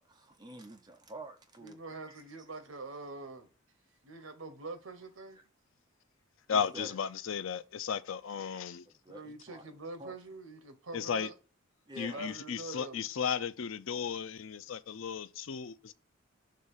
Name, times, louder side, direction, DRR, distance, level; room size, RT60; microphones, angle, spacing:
voice 1, 0.0-2.5 4.2-4.3 5.3-5.4 6.5-7.0 8.9-9.7 10.0-10.1 11.9-12.3, right 1 dB, 20° right, 0.9 m, -49 dB
voice 2, 1.6-3.5 4.0-5.4 9.1-11.3 12.1-13.0, right 3 dB, 75° right, 1.1 m, -44 dB
voice 3, 6.5-8.8 10.9-11.3 12.0-15.9, left 7 dB, 70° left, 0.5 m, -35 dB
6.5 x 3.2 x 5.5 m
head